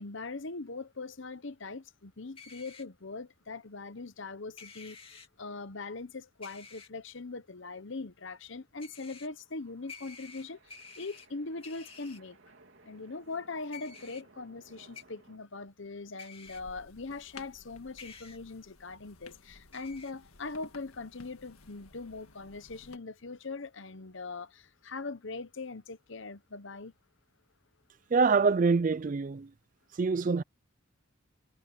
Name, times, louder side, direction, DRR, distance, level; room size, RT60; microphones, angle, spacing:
voice 1, 0.0-12.4 12.8-26.9, left 3 dB, 60° left, 1.0 m, -41 dB
sound 1, 2.4-2.9 4.6-5.3 6.4-6.9 8.8-9.3 9.9-11.3 11.6-12.2 13.7-14.2 14.9-15.0 16.2-16.6 18.0-18.4 19.7-20.1, left 5 dB, 25° left, 2.6 m, -50 dB
sound 2, 9.0-15.4, right 2 dB, 60° right, 3.3 m, -61 dB
sound 3, 16.4-23.0, left 3 dB, 85° left, 1.7 m, -55 dB
voice 2, 28.1-29.5 30.0-30.4, right 4 dB, 35° right, 0.4 m, -25 dB
head